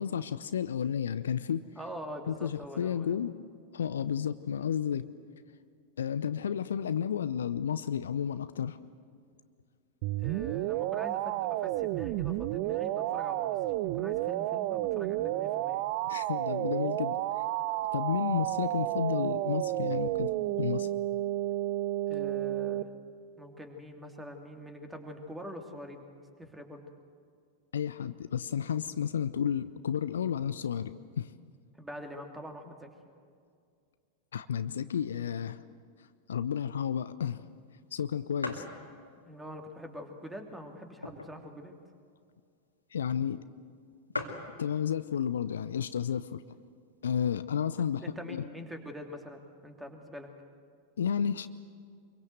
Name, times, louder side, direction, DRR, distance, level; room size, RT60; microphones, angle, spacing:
voice 1, 0.0-1.6 2.3-3.3 3.7-5.1 6.0-8.8 16.1-17.2 17.9-20.3 20.6-20.9 27.7-31.3 34.3-35.6 36.3-37.5 37.9-38.6 42.9-43.4 44.6-46.4 47.0-48.4 51.0-51.5, left 8 dB, 65° left, 14 dB, 0.6 m, -32 dB
voice 2, 1.8-3.1 10.2-13.6 13.9-15.8 22.1-22.9 23.4-26.0 26.4-26.8 31.8-32.9 39.2-41.8 47.8-50.3, equal, 5° right, 4 dB, 2.8 m, -44 dB
sound 1, 10.0-22.8, right 15 dB, 45° right, 0.6 m, -31 dB
sound 2, 37.4-37.5 37.9-38.0 38.4-38.8 39.4-39.5 40.3-41.5 41.9-42.0 42.1-42.4 43.1-43.2 43.5-43.6 43.8-43.9 44.1-44.5 45.4-45.7 46.3-46.4 46.6-47.4, left 2 dB, 80° left, 2.3 m, -39 dB
25.0 x 23.0 x 7.9 m, 2.2 s
figure-of-eight pair, 90°, 0 cm